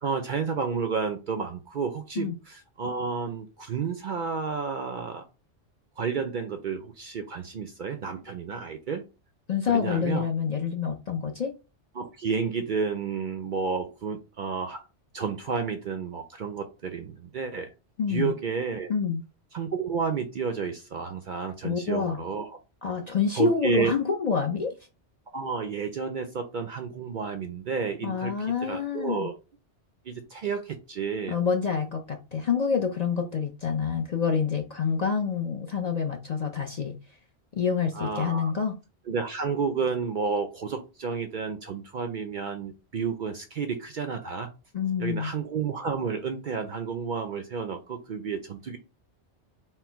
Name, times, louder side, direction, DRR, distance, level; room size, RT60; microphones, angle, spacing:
voice 1, 0.0-5.2 6.0-9.0 9.7-10.2 11.9-14.8 15.1-17.7 18.1-18.9 19.5-22.6 23.4-23.9 25.3-28.3 28.6-29.3 30.1-31.4 37.9-38.5 39.1-44.5 45.0-48.8, right 5 dB, 60° right, 7 dB, 0.5 m, -31 dB
voice 2, 9.5-11.5 18.0-18.3 18.9-19.2 21.6-22.2 22.8-24.7 28.0-29.3 31.3-36.9 37.6-38.7 44.7-45.3, left 6 dB, 50° left, 2 dB, 0.5 m, -27 dB
4.3 x 2.0 x 4.4 m, 0.30 s
omnidirectional pair, 1.2 m